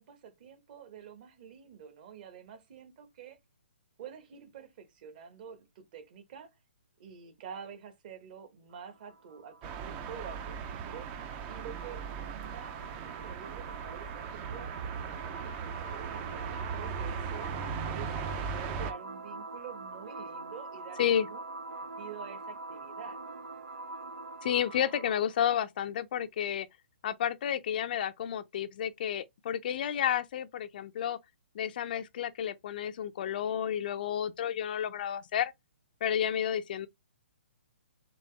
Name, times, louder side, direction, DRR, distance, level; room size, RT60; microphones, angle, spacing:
voice 1, 0.0-3.4 4.0-6.6 7.0-17.5 17.9-18.1 18.4-21.4 21.8-23.2, right 8 dB, 45° right, 1.3 m, -48 dB
sound 1, 8.7-25.4, right 2 dB, 85° right, 0.6 m, -45 dB
sound 2, 9.6-18.9, right 6 dB, 25° right, 0.6 m, -38 dB
voice 2, 24.4-26.7 27.0-31.2 31.5-35.5 36.0-36.9, left 9 dB, 50° left, 0.5 m, -31 dB
4.1 x 3.0 x 3.4 m
hypercardioid pair, 135°, 7 cm